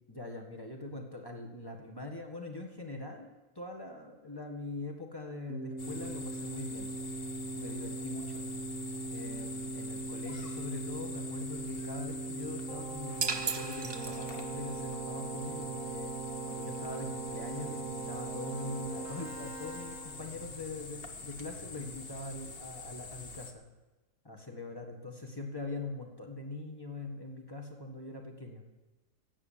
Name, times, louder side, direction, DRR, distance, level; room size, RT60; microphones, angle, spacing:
voice 1, 0.1-3.3 3.6-7.0 7.5-8.5 9.1-16.1 16.5-23.6 24.3-28.6, left 2 dB, 15° left, 2 dB, 1.7 m, -42 dB
Keyboard (musical), 5.5-20.5, right 3 dB, 75° right, 1.9 m, -40 dB
sound 1, 5.8-23.5, left 4 dB, 45° left, 1.2 m, -45 dB
sound 2, 13.2-14.7, right 4 dB, 35° right, 0.4 m, -35 dB
17.5 x 7.3 x 7.5 m, 1.2 s
omnidirectional pair, 1.4 m